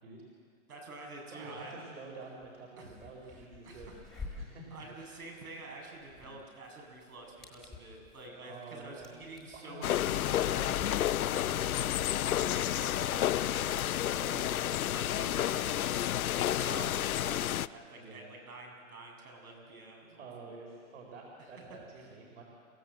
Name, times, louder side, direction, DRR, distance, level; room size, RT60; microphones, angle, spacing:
voice 1, 0.7-1.8 2.8-2.9 3.3-4.0 4.2-4.4 4.7-10.8 12.3-12.4 12.7-15.9 16.3-20.5, right 2 dB, 90° right, 1 dB, 7.6 m, -48 dB
voice 2, 1.3-3.9 4.4-5.2 6.2-6.4 8.4-9.3 9.5-12.0 13.3-14.6 17.9-18.3 20.2-22.4, right 3 dB, 55° right, 0 dB, 4.6 m, -49 dB
sound 1, 2.4-2.5 2.8-16.2, left 3 dB, ahead, 1.5 m, -52 dB
sound 2, 9.8-17.7, left 12 dB, 80° left, 0.6 m, -30 dB
29.0 x 15.5 x 7.8 m, 2.1 s
hypercardioid pair, 170°, 43 cm